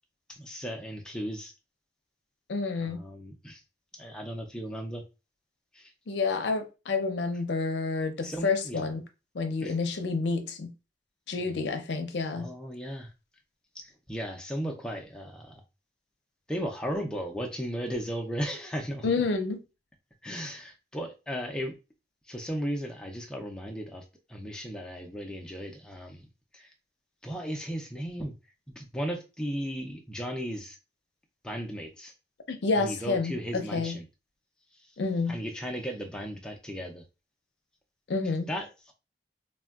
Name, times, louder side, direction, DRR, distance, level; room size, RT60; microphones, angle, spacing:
voice 1, 0.3-1.5 2.8-3.6 3.9-5.0 5.7-5.9 8.2-8.9 9.6-9.8 11.4-11.8 12.3-13.1 13.7-15.6 16.5-19.1 20.2-21.7 22.3-24.0 24.3-26.2 26.5-26.7 27.2-28.3 28.8-30.8 31.4-32.1 32.8-34.0 34.8-34.9 35.3-37.0 38.5-38.9, equal, 5° left, 0.4 m, -36 dB
voice 2, 2.5-3.0 6.1-9.0 9.3-10.7 11.3-12.5 19.0-19.6 32.5-34.0 35.0-35.4 38.1-38.5, left 4 dB, 80° left, 0.5 m, -29 dB
3.4 x 2.2 x 2.3 m
head